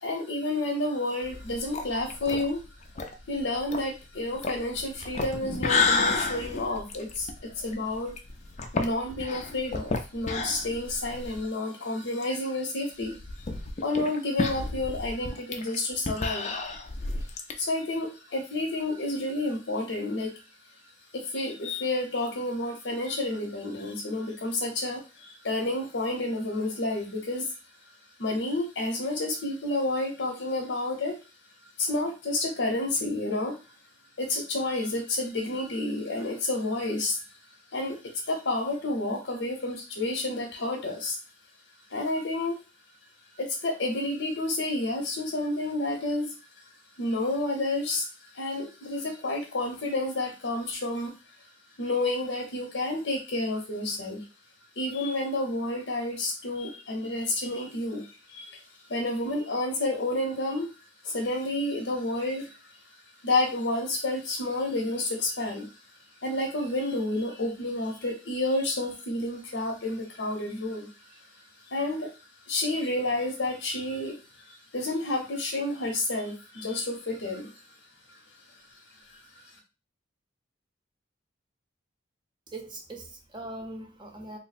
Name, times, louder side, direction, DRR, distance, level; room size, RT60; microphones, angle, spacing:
voice 1, 0.0-2.6 3.3-8.1 8.7-16.7 17.2-31.2 31.8-33.6 34.2-41.2 41.9-42.6 43.3-46.7 47.0-51.5 51.8-54.3 54.8-60.7 61.0-77.8 78.1-78.2 78.5-79.6, left 2 dB, 80° left, 0 dB, 0.8 m, -30 dB
sound 1, 1.2-11.5 11.8-11.9 12.2-12.3 13.0-17.5, left 4 dB, 35° left, 0.4 m, -31 dB
voice 2, 82.5-84.4, right 2 dB, 25° right, 3 dB, 0.6 m, -41 dB
3.1 x 2.0 x 4.1 m, 0.31 s
head